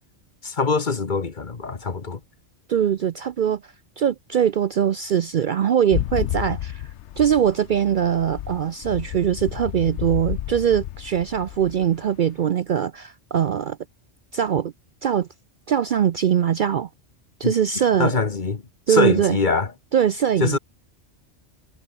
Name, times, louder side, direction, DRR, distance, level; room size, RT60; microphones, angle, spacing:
voice 1, 0.4-2.2 17.4-17.5 18.0-18.6 18.9-19.7 20.4-20.6, left 4 dB, 45° left, 1.4 m, -23 dB
voice 2, 2.7-3.6 4.0-6.8 7.2-13.8 14.3-14.7 15.0-15.3 15.7-16.9 17.4-18.1 18.9-19.4 19.9-20.6, right 9 dB, 55° right, 0.6 m, -21 dB
sound 1, 5.9-12.4, left 13 dB, 75° left, 0.9 m, -31 dB
omnidirectional pair, 1.2 m